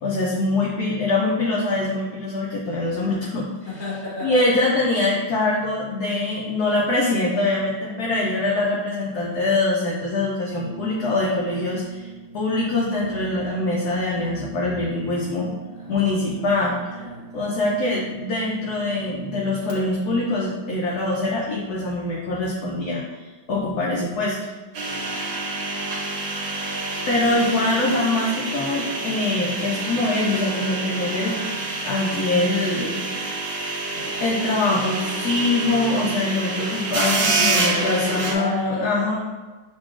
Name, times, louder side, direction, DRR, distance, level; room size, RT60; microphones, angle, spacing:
voice 1, 0.0-3.5 4.2-12.1 12.3-15.5 15.9-16.7 17.3-23.2 23.5-24.5 27.1-33.0 34.2-39.2, left 2 dB, 65° left, -4 dB, 1.0 m, -23 dB
voice 2, 3.7-4.6 15.7-18.0 24.8-25.7 37.2-39.0, left 1 dB, 30° left, -6 dB, 1.3 m, -34 dB
Brass instrument, 10.4-19.8, right 4 dB, 45° right, 1.2 m, -41 dB
sound 1, 24.7-38.3, right 3 dB, 75° right, 1.7 m, -27 dB
6.4 x 2.9 x 2.4 m, 1.3 s
omnidirectional pair, 2.2 m